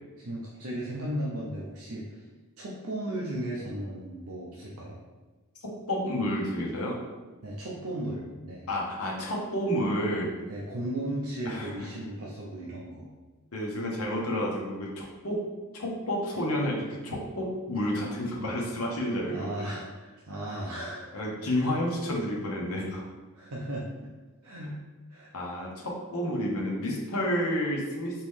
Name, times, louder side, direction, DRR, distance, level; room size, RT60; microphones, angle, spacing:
voice 1, 0.2-2.2 2.6-5.0 7.4-8.7 10.5-13.1 19.2-21.0 21.5-21.7 23.3-24.1 24.4-24.7 25.1-25.3, right 1 dB, 75° right, -4 dB, 0.7 m, -35 dB
voice 2, 5.9-7.0 8.7-10.3 11.4-11.9 13.5-15.4 15.7-19.5 21.1-23.0 25.3-28.2, equal, 75° left, -2 dB, 1.0 m, -30 dB
4.4 x 3.0 x 3.6 m, 1.3 s
head